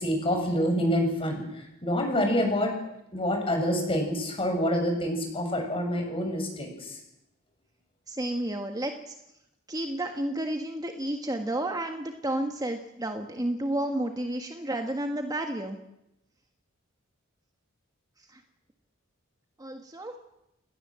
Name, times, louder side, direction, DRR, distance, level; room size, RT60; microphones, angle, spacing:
voice 1, 0.0-2.7 3.1-7.0, equal, 25° left, 3 dB, 7.6 m, -27 dB
voice 2, 8.1-9.1 9.7-15.8 18.3-18.4 19.6-20.2, right 1 dB, 20° right, 5 dB, 1.6 m, -31 dB
29.5 x 20.0 x 7.7 m, 0.87 s
head